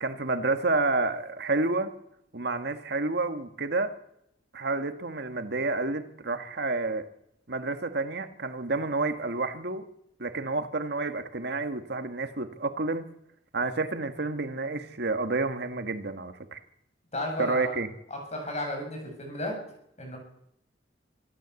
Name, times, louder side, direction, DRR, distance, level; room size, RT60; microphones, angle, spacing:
voice 1, 0.0-1.9 2.3-3.9 4.5-7.1 7.5-9.8 10.2-13.1 13.5-16.6 17.4-17.9, right 3 dB, 60° right, 8 dB, 1.6 m, -29 dB
voice 2, 17.1-17.8 18.1-19.6 20.0-20.2, left 1 dB, 35° left, 2 dB, 7.5 m, -33 dB
25.5 x 13.0 x 8.2 m, 0.78 s
head